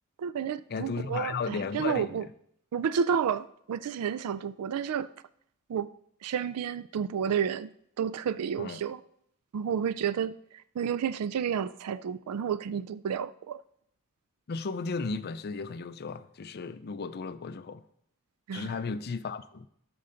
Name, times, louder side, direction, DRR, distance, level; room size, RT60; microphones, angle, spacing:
voice 1, 0.2-2.2 2.7-5.1 5.7-5.9 6.2-7.7 8.0-9.0 9.5-10.4 10.8-13.6 18.5-18.7, right 7 dB, 85° right, 0.4 m, -31 dB
voice 2, 0.7-2.3 8.6-8.8 14.5-17.8 18.5-19.7, left 4 dB, 45° left, 0.5 m, -35 dB
13.0 x 5.4 x 3.9 m
head